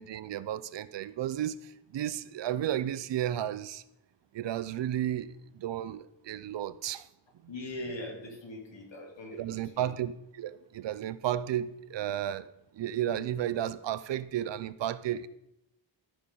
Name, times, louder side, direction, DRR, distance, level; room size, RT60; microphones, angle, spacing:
voice 1, 0.0-3.8 4.3-7.1 9.3-12.5 12.7-15.3, right 11 dB, 70° right, 0.5 m, -33 dB
voice 2, 7.5-9.9, left 1 dB, 75° left, 2.4 m, -41 dB
13.5 x 6.0 x 3.8 m
wide cardioid pair, 115°, 45 cm